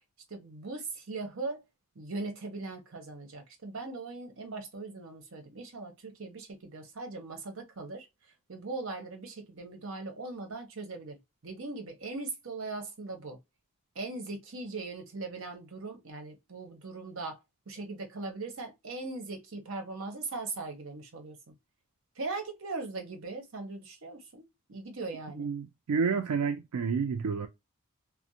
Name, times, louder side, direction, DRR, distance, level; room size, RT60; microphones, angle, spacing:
voice 1, 0.3-1.6 1.9-8.1 8.5-13.4 13.9-17.4 17.7-21.4 22.2-24.4 24.7-25.5, right 3 dB, 60° right, 0.8 m, -39 dB
voice 2, 25.4-27.5, right 5 dB, 85° right, 0.4 m, -30 dB
2.5 x 2.0 x 2.7 m
head